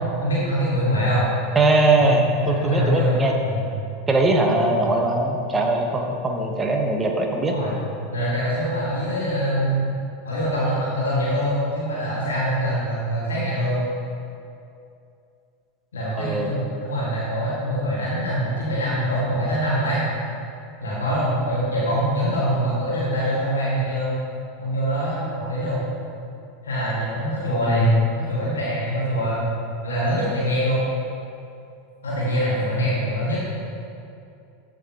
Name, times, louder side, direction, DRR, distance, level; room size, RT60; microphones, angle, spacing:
voice 1, 0.2-1.3 2.0-3.6 7.4-7.8 8.1-9.9 10.2-13.9 15.9-20.0 20.8-24.2 24.6-25.9 26.6-29.5 29.8-30.8 32.0-33.4, equal, 80° left, -8 dB, 2.0 m, -24 dB
voice 2, 1.5-3.3 4.1-7.6 16.2-16.5 27.7-28.1, right 2 dB, 20° right, 2 dB, 1.3 m, -20 dB
14.0 x 6.3 x 3.0 m, 2.6 s
figure-of-eight pair, 85°, 0 cm